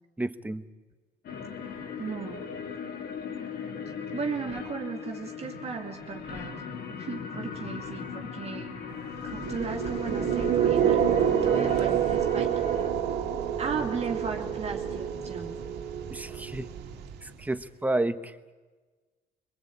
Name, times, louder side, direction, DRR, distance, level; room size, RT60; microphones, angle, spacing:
voice 1, 0.2-0.6 16.1-16.7 17.2-18.5, right 2 dB, 10° right, 11 dB, 1.1 m, -31 dB
sound 1, 1.2-12.9, left 6 dB, 65° left, 2.8 m, -38 dB
voice 2, 2.0-2.5 4.1-6.6 7.0-12.5 13.6-15.6, right 5 dB, 40° right, 2 dB, 2.5 m, -36 dB
sound 2, 9.3-17.4, right 8 dB, 80° right, 2.1 m, -27 dB
23.5 x 22.0 x 8.7 m, 1.3 s
cardioid pair, 110°, 17 cm